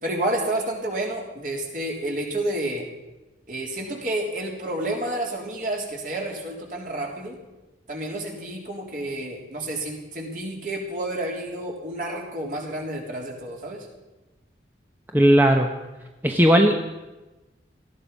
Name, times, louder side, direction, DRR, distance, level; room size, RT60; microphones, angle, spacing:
voice 1, 0.0-2.9 3.5-7.4 7.9-13.9, right 1 dB, 45° right, 0 dB, 3.6 m, -30 dB
voice 2, 15.1-15.7 16.2-16.9, equal, 10° right, 3 dB, 0.9 m, -17 dB
18.5 x 14.5 x 5.4 m, 1.1 s
head